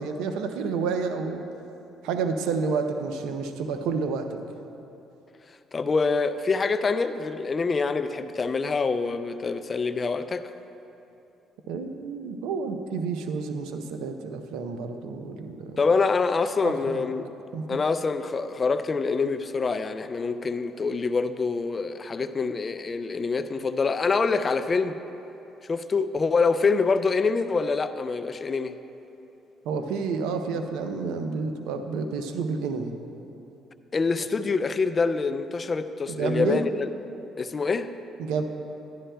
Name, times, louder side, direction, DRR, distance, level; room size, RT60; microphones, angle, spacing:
voice 1, 0.0-1.4 2.0-4.4 11.7-15.8 16.6-17.1 17.5-17.8 29.6-32.9 36.1-36.6 38.2-38.4, right 5 dB, 85° right, 6 dB, 0.5 m, -30 dB
voice 2, 5.7-10.5 15.8-17.3 17.7-25.0 25.7-28.8 33.9-36.9 37.4-37.9, left 4 dB, 35° left, 11 dB, 0.4 m, -25 dB
11.5 x 11.0 x 2.2 m, 2.9 s
cardioid pair, 80°, 0 cm